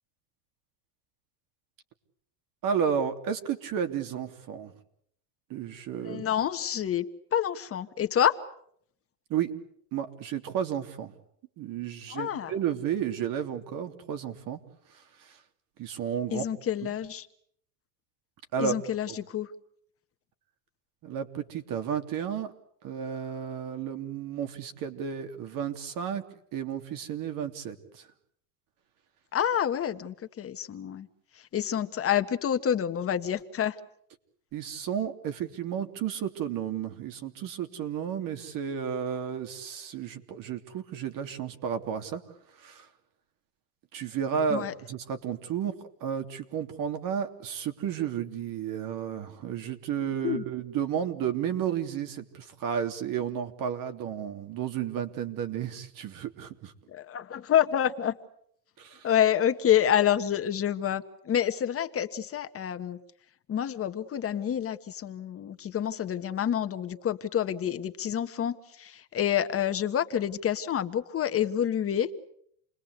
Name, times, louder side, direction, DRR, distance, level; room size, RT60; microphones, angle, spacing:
voice 1, 2.6-4.7 5.5-6.2 9.3-9.5 9.9-11.1 11.6-14.6 14.9-15.4 15.8-16.4 16.8-16.9 18.5-18.7 21.0-22.5 22.8-26.2 26.5-28.1 34.5-42.2 42.6-42.9 43.9-56.7 58.8-59.1, right 8 dB, 50° right, 8 dB, 3.2 m, -32 dB
voice 2, 6.0-7.1 7.3-8.4 12.1-12.5 16.3-17.3 18.6-19.5 29.3-31.1 31.5-33.8 44.5-44.7 50.2-50.4 56.9-58.2 59.0-63.0 63.5-72.1, left 10 dB, 35° left, 9 dB, 1.5 m, -28 dB
29.0 x 21.0 x 8.2 m, 0.70 s
supercardioid pair, 120°, 41 cm